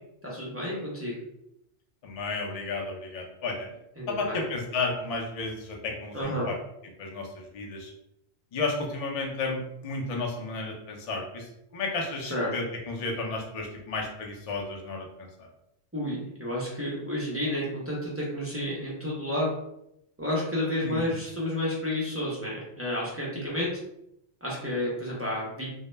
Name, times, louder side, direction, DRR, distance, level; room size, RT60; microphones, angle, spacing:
voice 1, 0.2-1.1 4.0-4.4 6.1-6.5 12.3-12.5 15.9-19.5 20.2-23.7 24.4-25.7, left 1 dB, 20° right, -6 dB, 0.3 m, -31 dB
voice 2, 2.0-3.7 4.1-6.5 7.0-7.9 8.5-15.5 20.8-21.2, left 3 dB, 60° left, 0 dB, 0.4 m, -33 dB
2.0 x 2.0 x 3.1 m, 0.81 s
omnidirectional pair, 1.1 m